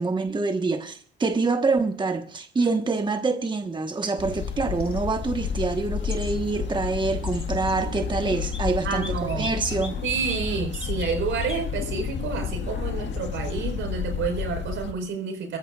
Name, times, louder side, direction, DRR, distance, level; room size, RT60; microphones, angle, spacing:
voice 1, 0.0-10.0, right 3 dB, 25° right, 1.2 m, -26 dB
sound 1, 4.2-14.9, left 7 dB, 65° left, 1.6 m, -31 dB
sound 2, 4.8-5.0 6.1-6.3 7.2-7.4 8.4-8.6 8.9-10.4 10.7-11.1 11.4-11.7, left 3 dB, 25° left, 2.9 m, -39 dB
voice 2, 8.8-9.5 10.0-15.6, right 5 dB, 75° right, 4.6 m, -29 dB
26.5 x 14.0 x 2.4 m
cardioid pair, 90°, 20 cm